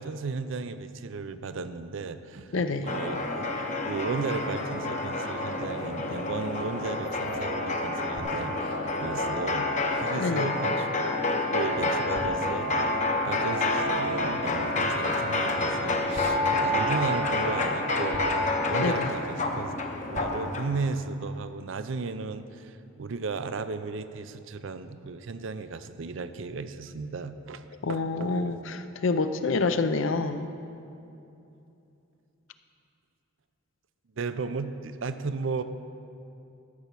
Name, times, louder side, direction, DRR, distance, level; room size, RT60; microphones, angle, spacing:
voice 1, 0.0-3.5 3.8-9.7 10.0-11.0 11.4-18.2 18.7-19.8 20.1-27.6 27.9-28.4 34.2-35.6, right 4 dB, 65° right, 12 dB, 0.5 m, -35 dB
voice 2, 2.5-2.9 10.2-10.6 18.8-19.1 27.8-30.5, left 3 dB, 65° left, 10 dB, 0.5 m, -27 dB
sound 1, 2.9-20.7, left 2 dB, 35° left, 0.8 m, -29 dB
sound 2, 8.2-9.4 12.2-13.8 16.2-19.7 20.2-21.1, equal, 45° right, 1.0 m, -34 dB
13.0 x 6.0 x 6.8 m, 2.7 s
head